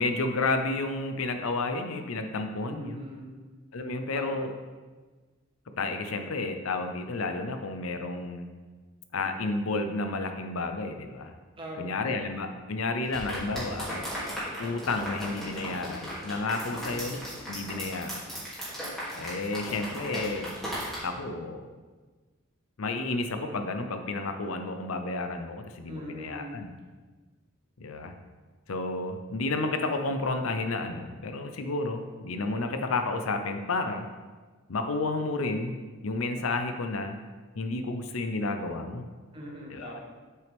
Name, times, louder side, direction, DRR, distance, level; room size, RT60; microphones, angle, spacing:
voice 1, 0.0-3.0 3.7-4.5 5.8-8.5 9.1-11.3 11.8-13.9 14.6-17.2 17.5-18.2 19.1-20.5 21.0-21.7 22.8-26.7 27.8-28.1 28.7-34.1 34.7-35.8 36.0-37.2 37.6-39.0 39.7-40.0, left 3 dB, 90° left, 6 dB, 0.7 m, -31 dB
voice 2, 2.6-3.3 4.1-4.5 11.6-12.2 16.7-17.2 25.9-26.7 39.3-40.0, equal, 25° right, -2 dB, 1.4 m, -42 dB
sound 1, 13.1-21.0, equal, ahead, 2.5 m, -37 dB
7.6 x 6.4 x 3.5 m, 1.3 s
head